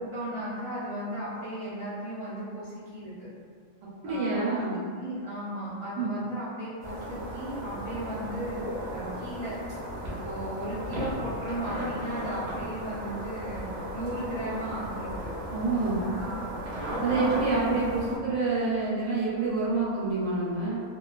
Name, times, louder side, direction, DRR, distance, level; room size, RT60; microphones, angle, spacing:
voice 1, 0.0-3.3 4.0-4.6 5.0-8.6 8.9-9.6 10.0-15.3 16.2-17.9, right 1 dB, 25° right, -10 dB, 0.8 m, -36 dB
voice 2, 4.0-4.8 5.9-6.1 15.5-16.0 17.0-20.8, right 3 dB, 75° right, -7 dB, 1.0 m, -27 dB
sound 1, 6.8-18.2, equal, 50° right, 0.8 m, -35 dB
2.4 x 2.3 x 2.2 m, 2.1 s
omnidirectional pair, 1.4 m